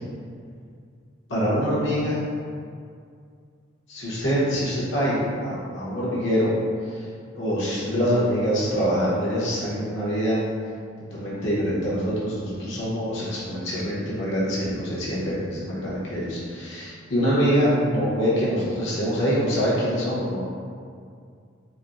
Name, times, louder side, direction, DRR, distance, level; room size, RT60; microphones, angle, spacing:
voice 1, 1.3-2.2 3.9-6.5 6.8-7.1 7.3-10.4 11.1-20.4, equal, 65° left, -8 dB, 0.9 m, -25 dB
4.1 x 2.0 x 2.5 m, 2.3 s
head